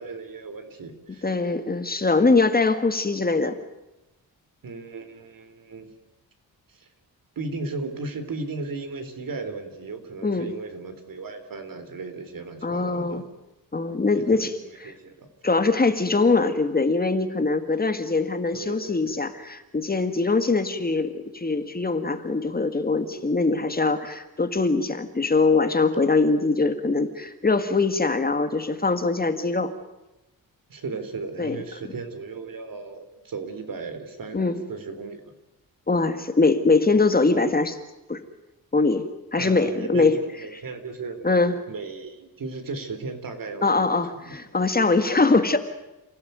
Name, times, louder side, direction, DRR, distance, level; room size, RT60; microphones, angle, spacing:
voice 1, 0.0-1.3 4.6-5.9 6.7-6.9 7.4-13.3 14.1-15.3 18.5-19.2 26.4-26.5 30.7-35.3 39.4-44.4, right 3 dB, 60° right, 8 dB, 3.8 m, -36 dB
voice 2, 1.2-3.6 10.2-10.5 12.6-13.2 13.7-14.5 15.4-29.7 31.4-31.6 34.3-34.6 35.9-37.8 38.1-38.2 38.7-39.0 39.3-40.2 41.2-41.5 43.6-45.6, left 3 dB, 25° left, 8 dB, 1.8 m, -22 dB
30.0 x 16.5 x 9.5 m, 0.98 s
wide cardioid pair, 155°, 38 cm